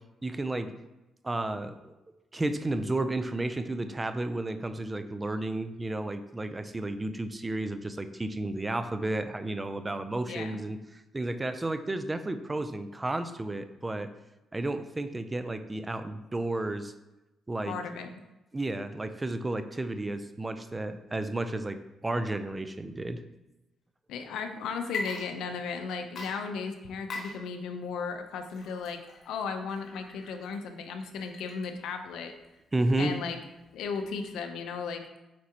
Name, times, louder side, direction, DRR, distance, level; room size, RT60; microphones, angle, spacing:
voice 1, 0.2-0.7 1.2-1.9 2.3-14.1 14.5-16.9 17.5-17.7 18.5-23.2 32.7-33.1, right 2 dB, 20° right, 10 dB, 0.5 m, -32 dB
voice 2, 10.2-10.6 17.7-18.1 24.1-29.0 29.3-32.3 33.0-33.4 33.7-35.0, left 5 dB, 80° left, 6 dB, 0.7 m, -35 dB
Water / Liquid, 24.8-25.8 26.1-34.4, left 3 dB, 60° left, 1.3 m, -43 dB
8.4 x 4.6 x 2.9 m, 0.99 s
cardioid pair, 90°, 0 cm